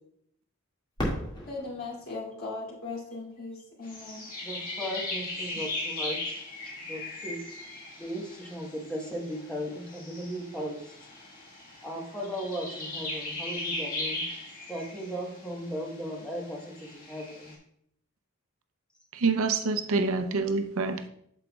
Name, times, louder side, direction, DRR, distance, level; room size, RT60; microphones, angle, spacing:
Fireworks, 1.0-3.7 4.4-4.5 5.2-5.6 7.5-7.7, equal, 20° left, 2.1 m, -37 dB
voice 1, 1.5-4.3 6.6-6.8, left 3 dB, 70° left, -4 dB, 2.9 m, -38 dB
sound 1, 3.8-17.5, left 2 dB, 40° left, 1.8 m, -38 dB
voice 2, 4.4-6.4 6.8-7.6 8.0-10.8 11.8-14.2 14.7-17.5, equal, 5° left, -2 dB, 1.3 m, -37 dB
voice 3, 19.1-21.1, right 4 dB, 70° right, 8 dB, 0.6 m, -27 dB
8.9 x 6.8 x 2.3 m, 0.71 s
head